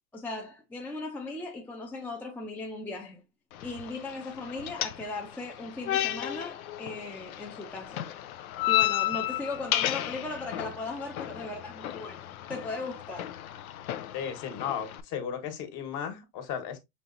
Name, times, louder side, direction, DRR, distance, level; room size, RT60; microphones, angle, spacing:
voice 1, 0.1-3.2 3.6-8.0 8.6-13.3, left 3 dB, 5° left, 0.5 m, -38 dB
sound 1, 3.5-15.0, left 14 dB, 90° left, 0.6 m, -33 dB
voice 2, 14.1-16.8, left 8 dB, 45° left, 1.4 m, -35 dB
5.4 x 3.1 x 2.5 m
hypercardioid pair, 120°, 42 cm